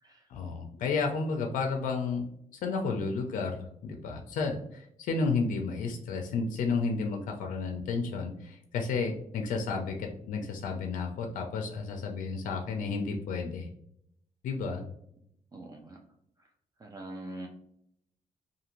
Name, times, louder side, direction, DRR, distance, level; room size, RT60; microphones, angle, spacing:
voice 1, 0.3-2.2 2.5-13.7 14.4-14.9, left 4 dB, 85° left, 3 dB, 0.4 m, -32 dB
voice 2, 15.5-16.0 16.4-16.5 16.8-17.5, right 1 dB, 30° right, 1 dB, 0.4 m, -43 dB
2.5 x 2.5 x 2.9 m, 0.73 s
cardioid pair, 135°, 13 cm